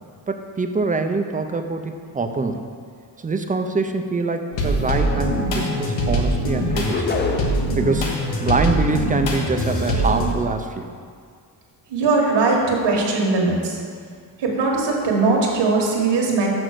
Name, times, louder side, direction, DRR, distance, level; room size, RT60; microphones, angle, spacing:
voice 1, 0.3-2.6 3.2-7.1 7.7-8.1 8.4-10.9, right 3 dB, 20° right, 6 dB, 0.4 m, -24 dB
sound 1, 4.5-10.3, equal, 80° left, 1.4 m, -23 dB
sound 2, 6.9-7.8, left 3 dB, 25° left, 0.6 m, -25 dB
voice 2, 11.9-13.8 14.4-16.5, right 3 dB, 65° right, -2 dB, 1.7 m, -20 dB
6.2 x 6.1 x 6.5 m, 2.1 s
cardioid pair, 125°, 44 cm